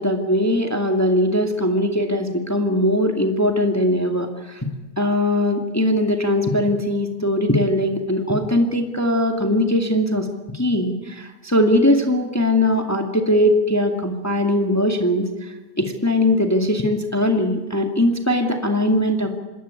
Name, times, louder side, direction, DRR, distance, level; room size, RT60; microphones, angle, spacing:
voice 1, 0.0-4.7 5.0-15.3 15.8-19.4, left 1 dB, 10° left, 4 dB, 2.2 m, -20 dB
27.0 x 20.0 x 9.7 m, 1.2 s
omnidirectional pair, 2.0 m